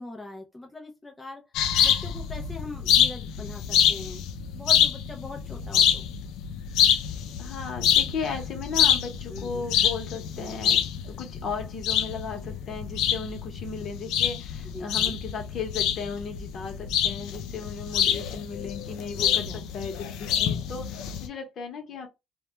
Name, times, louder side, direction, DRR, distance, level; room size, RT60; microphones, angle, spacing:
voice 1, 0.0-1.4 1.8-4.2 4.5-6.0 9.3-9.7 14.6-15.2 19.5-19.7, left 2 dB, 10° left, 0.4 m, -41 dB
sound 1, 1.5-21.3, left 9 dB, 90° left, 0.4 m, -26 dB
voice 2, 7.4-22.1, left 5 dB, 45° left, 0.8 m, -36 dB
2.2 x 2.2 x 2.9 m
cardioid pair, 140°, 0 cm